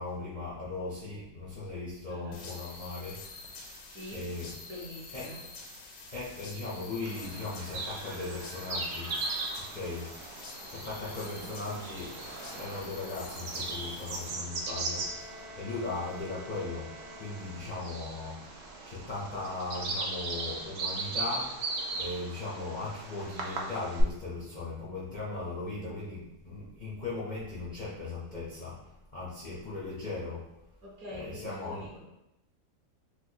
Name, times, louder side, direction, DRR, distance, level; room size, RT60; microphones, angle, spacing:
voice 1, 0.0-3.2 4.1-4.5 5.1-5.3 6.1-9.2 9.7-10.1 10.7-12.2 12.5-18.5 18.8-21.6 21.9-30.4 31.1-31.9, left 3 dB, 60° left, -8 dB, 0.4 m, -38 dB
sound 1, 2.3-14.2, left 3 dB, 90° left, 1.2 m, -47 dB
voice 2, 3.9-4.2 4.6-5.4 11.2-11.5 30.8-32.0, equal, 60° right, -7 dB, 1.4 m, -44 dB
Bird vocalization bird call bird song, 7.0-24.0, right 3 dB, 85° right, 0.5 m, -38 dB
Bowed string instrument, 14.2-18.3, left 1 dB, 40° right, 0.6 m, -50 dB
4.4 x 2.1 x 2.7 m, 0.89 s
omnidirectional pair, 1.8 m